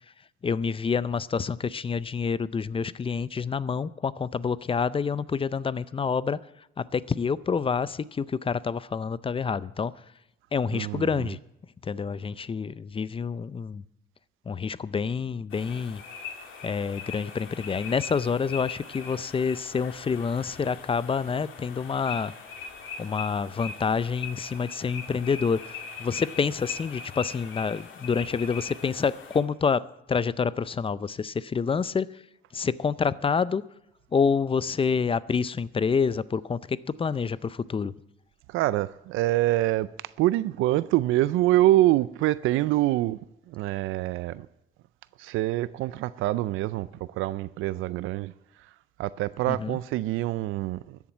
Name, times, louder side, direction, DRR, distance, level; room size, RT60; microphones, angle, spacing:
voice 1, 0.4-6.4 6.8-9.9 10.5-11.4 11.8-13.8 14.5-16.0 16.6-22.3 23.0-32.2 32.5-33.6 34.1-37.9 49.5-49.8, left 5 dB, 25° left, 0.5 m, -28 dB
voice 2, 10.7-11.3 38.5-43.2 43.5-44.5 45.2-51.0, right 15 dB, 90° right, 0.4 m, -26 dB
sound 1, 15.5-29.4, left 5 dB, 80° left, 2.3 m, -41 dB
13.5 x 7.3 x 8.8 m
cardioid pair, 90°, 20 cm